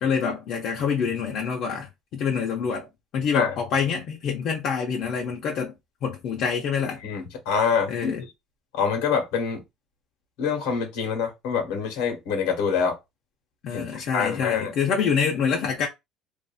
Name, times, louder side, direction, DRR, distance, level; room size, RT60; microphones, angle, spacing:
voice 1, 0.0-2.9 3.1-5.7 6.0-7.0 7.9-8.2 13.6-15.9, left 6 dB, 60° left, 0.7 m, -26 dB
voice 2, 7.0-8.1 8.7-9.6 10.4-13.0 13.7-13.8 14.1-14.7, left 6 dB, 85° left, 1.3 m, -25 dB
2.7 x 2.6 x 2.4 m
cardioid pair, 125°, 0 cm